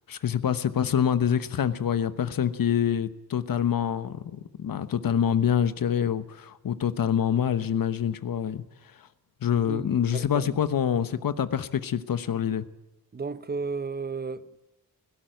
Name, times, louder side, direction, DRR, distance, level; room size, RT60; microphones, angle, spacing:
voice 1, 0.1-8.6 9.4-12.6, left 8 dB, 60° left, 1.1 m, -26 dB
voice 2, 10.1-10.5 13.1-14.7, right 4 dB, 25° right, 0.8 m, -33 dB
17.5 x 17.0 x 9.1 m
wide cardioid pair, 145°, 38 cm